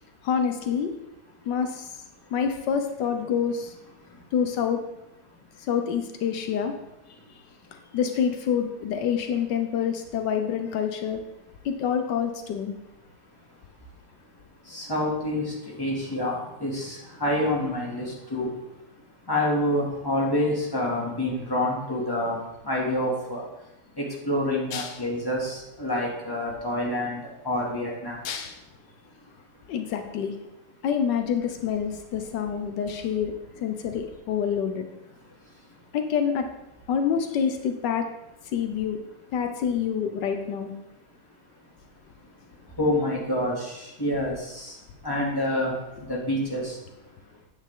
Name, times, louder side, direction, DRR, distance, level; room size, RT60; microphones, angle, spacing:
voice 1, 0.2-0.9 1.5-1.9 2.3-3.7 4.3-4.8 5.7-6.7 7.9-11.2 11.6-12.7 24.7-24.9 28.2-28.6 29.7-30.3 30.8-33.3 33.6-34.9 35.9-36.4 36.9-38.1 38.5-39.0 39.3-40.7, left 7 dB, 80° left, 6 dB, 1.4 m, -27 dB
voice 2, 14.7-15.4 15.8-16.9 17.2-18.1 18.3-18.5 19.3-22.4 22.7-23.4 24.0-28.2 42.8-43.5 44.0-44.3 45.0-45.7 46.1-46.6, left 1 dB, 15° left, -4 dB, 2.3 m, -27 dB
9.5 x 8.3 x 3.7 m, 0.91 s
omnidirectional pair, 1.9 m